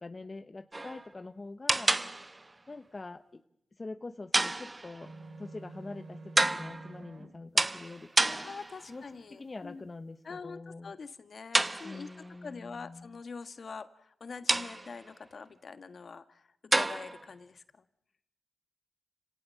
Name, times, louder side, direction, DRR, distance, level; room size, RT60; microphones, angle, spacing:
voice 1, 0.0-2.0 2.7-3.4 3.8-5.1 5.4-8.5 8.9-10.9 11.8-13.2, left 3 dB, 35° left, 10 dB, 1.0 m, -45 dB
sound 1, 0.7-1.1 1.7-2.5 4.3-5.1 6.4-7.0 7.6-8.9 11.5-12.3 14.5-15.1 16.7-17.3, right 2 dB, 25° right, 0.9 m, -29 dB
sound 2, 5.0-7.3, right 2 dB, 60° right, 2.5 m, -47 dB
voice 2, 8.4-9.8 10.2-12.1 12.4-16.5 16.7-17.6, left 4 dB, 60° left, 11 dB, 1.5 m, -44 dB
29.5 x 18.0 x 7.6 m, 0.75 s
cardioid pair, 65°, 0 cm